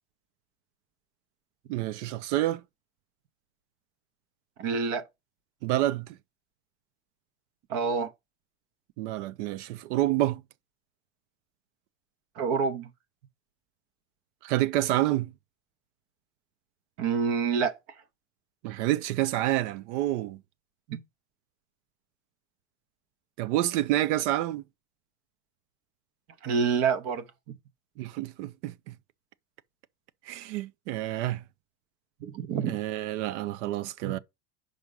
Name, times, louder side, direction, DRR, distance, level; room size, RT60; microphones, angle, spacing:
voice 1, 1.7-2.6 5.6-6.1 9.0-10.4 14.4-15.3 18.6-20.4 23.4-24.6 28.0-29.0 30.3-31.4 32.7-34.2, right 15 dB, 90° right, 0.8 m, -28 dB
voice 2, 4.6-5.0 7.7-8.1 12.4-12.9 17.0-17.8 20.9-21.0 26.4-27.2 32.2-32.8 34.0-34.2, right 6 dB, 45° right, 0.8 m, -27 dB
6.0 x 5.3 x 5.3 m
cardioid pair, 175°, 34 cm